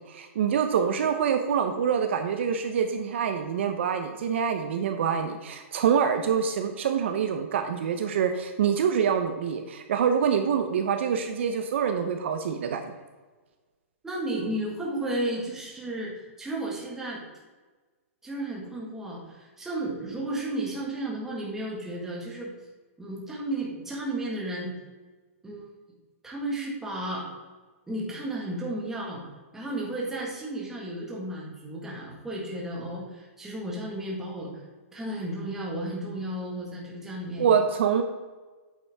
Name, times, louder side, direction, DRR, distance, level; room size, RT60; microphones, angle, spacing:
voice 1, 0.0-12.9 37.4-38.0, right 7 dB, 55° right, 6 dB, 0.8 m, -26 dB
voice 2, 14.0-17.3 18.2-22.5 23.0-24.8 25.4-25.7 26.2-27.3 27.9-29.2 29.5-34.5 34.9-37.5, right 1 dB, 5° right, -3 dB, 1.6 m, -33 dB
8.7 x 7.0 x 3.5 m, 1.3 s
hypercardioid pair, 170°, 8 cm